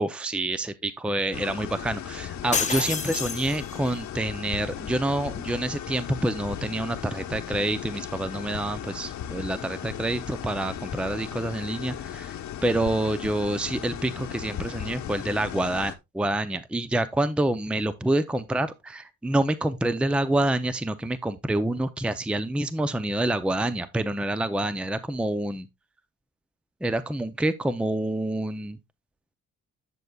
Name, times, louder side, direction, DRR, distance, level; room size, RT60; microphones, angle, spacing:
voice 1, 0.0-12.4 12.6-25.7 26.8-28.8, right 1 dB, 5° right, 0.6 m, -27 dB
sound 1, 1.3-15.9, left 10 dB, 70° left, 1.1 m, -37 dB
sound 2, 2.5-4.0, left 5 dB, 25° left, 0.9 m, -29 dB
10.5 x 6.6 x 2.3 m
cardioid pair, 90°, 30 cm